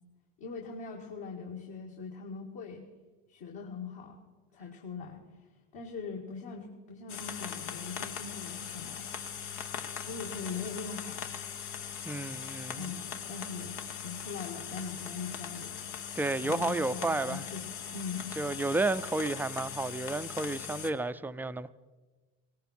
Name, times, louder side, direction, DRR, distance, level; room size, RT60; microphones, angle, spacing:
voice 1, 0.4-2.8 3.3-4.2 4.5-5.2 5.7-9.4 10.1-11.3 12.8-13.8 14.0-15.8 16.4-18.4, left 5 dB, 60° left, 2.1 m, -41 dB
sound 1, 7.1-20.9, left 8 dB, 80° left, 1.2 m, -40 dB
voice 2, 12.0-12.9 16.2-17.4 18.4-21.7, right 2 dB, 5° right, 0.4 m, -31 dB
18.0 x 17.0 x 4.3 m
hypercardioid pair, 70°, 45 cm